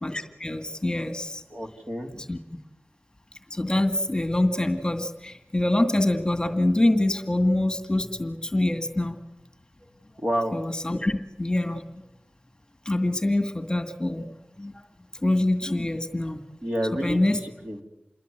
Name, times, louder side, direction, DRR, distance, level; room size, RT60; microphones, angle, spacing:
voice 1, 0.0-1.4 2.3-2.4 3.5-9.2 10.5-12.0 12.9-14.3 14.6-14.8 15.2-16.4 17.0-17.4, left 1 dB, 20° left, 6 dB, 2.2 m, -25 dB
voice 2, 1.5-2.2 10.2-10.5 16.6-17.8, equal, 35° right, 2 dB, 3.6 m, -29 dB
28.0 x 22.0 x 8.1 m, 0.95 s
wide cardioid pair, 80°, 4 cm